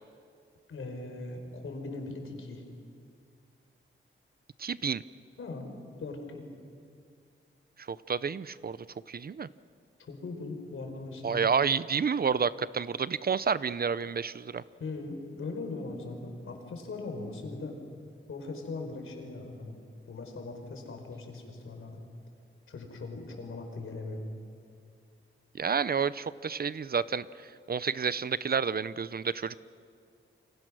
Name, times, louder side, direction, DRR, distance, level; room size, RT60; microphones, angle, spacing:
voice 1, 0.7-2.6 5.4-5.7 6.0-6.5 10.0-11.5 14.8-17.7 18.3-19.8 20.1-22.0 22.7-24.2, left 3 dB, 75° left, 4 dB, 4.4 m, -40 dB
voice 2, 4.6-5.0 7.9-8.8 9.1-9.5 11.2-14.6 25.5-27.2 27.7-29.6, right 6 dB, 45° right, 17 dB, 0.6 m, -29 dB
28.5 x 25.5 x 6.2 m, 2.3 s
wide cardioid pair, 105°, 21 cm